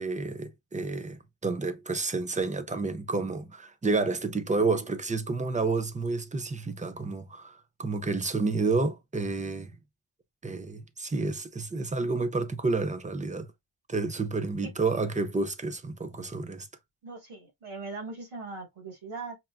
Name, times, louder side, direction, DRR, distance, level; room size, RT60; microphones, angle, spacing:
voice 1, 0.0-9.7 10.4-13.5 13.9-16.7, right 3 dB, 15° right, 0.5 m, -30 dB
voice 2, 17.0-19.4, right 3 dB, 85° right, 1.8 m, -40 dB
5.7 x 2.4 x 2.3 m
wide cardioid pair, 115°, 48 cm